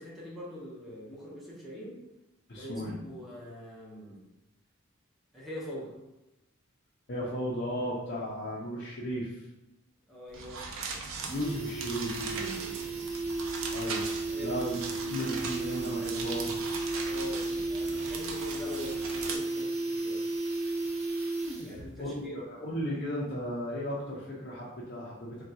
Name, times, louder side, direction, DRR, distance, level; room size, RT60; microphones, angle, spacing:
voice 1, 0.0-2.0 2.5-4.2 5.3-5.9 10.1-10.7 12.4-13.0 14.3-14.5 17.0-20.2 21.6-22.4, equal, ahead, -7 dB, 0.8 m, -43 dB
voice 2, 2.5-3.0 7.1-9.5 11.0-12.7 13.7-14.1 14.4-16.5 22.0-25.4, equal, 45° left, -7 dB, 0.6 m, -35 dB
sound 1, 10.3-10.4 10.7-10.8 11.1-21.9 22.2-22.3, right 2 dB, 30° right, 0.6 m, -34 dB
sound 2, 10.3-19.4, right 4 dB, 85° right, 0.5 m, -39 dB
3.5 x 2.3 x 2.7 m, 0.96 s
head